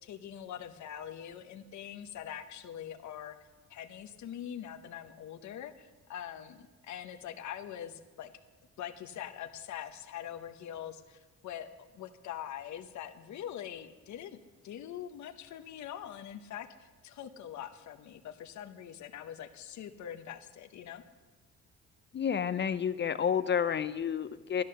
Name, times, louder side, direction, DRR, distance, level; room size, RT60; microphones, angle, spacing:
voice 1, 0.0-3.4 3.7-8.3 8.8-21.0, left 10 dB, 70° left, 7 dB, 0.9 m, -43 dB
voice 2, 22.1-24.6, left 7 dB, 35° left, 13 dB, 0.5 m, -30 dB
11.5 x 11.5 x 6.6 m, 1.3 s
cardioid pair, 90°, 30 cm